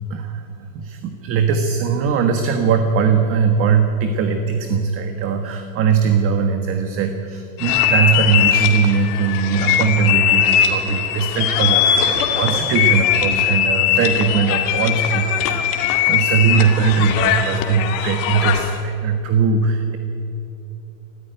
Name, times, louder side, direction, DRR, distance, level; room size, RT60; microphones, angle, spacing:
voice 1, 0.1-20.0, right 6 dB, 35° right, 6 dB, 1.4 m, -20 dB
sound 1, 7.6-18.8, left 9 dB, 55° left, 2.2 m, -20 dB
19.5 x 13.5 x 9.9 m, 2.9 s
supercardioid pair, 155°, 39 cm